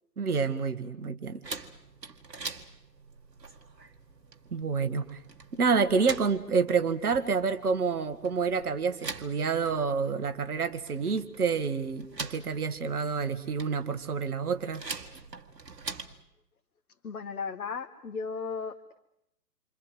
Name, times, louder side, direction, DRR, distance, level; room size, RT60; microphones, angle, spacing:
voice 1, 0.2-1.4 4.5-5.2 5.5-14.8, right 5 dB, 65° right, 9 dB, 2.1 m, -28 dB
sound 1, 1.4-16.2, right 4 dB, 80° right, 2.2 m, -44 dB
voice 2, 17.0-19.0, left 5 dB, 60° left, 6 dB, 1.8 m, -36 dB
28.5 x 26.0 x 8.0 m, 0.82 s
figure-of-eight pair, 135°, 49 cm